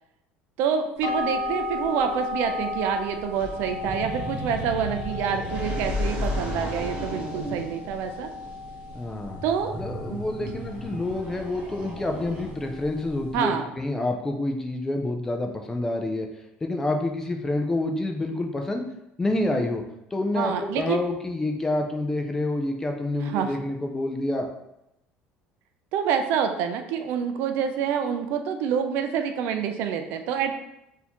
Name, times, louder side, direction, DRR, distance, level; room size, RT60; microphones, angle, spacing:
voice 1, 0.6-8.3 9.4-9.7 13.3-13.7 20.3-21.0 23.2-23.5 25.9-30.5, right 7 dB, 65° right, 7 dB, 0.4 m, -27 dB
sound 1, 1.0-13.4, left 3 dB, 75° left, 0.7 m, -35 dB
sound 2, 3.3-12.9, left 1 dB, 30° right, 0.8 m, -34 dB
voice 2, 8.9-9.4 9.8-16.3 16.6-18.9 19.2-19.8 20.1-24.5, left 2 dB, 10° left, 3 dB, 0.4 m, -28 dB
4.0 x 2.7 x 2.9 m, 0.84 s
cardioid pair, 160°, 4 cm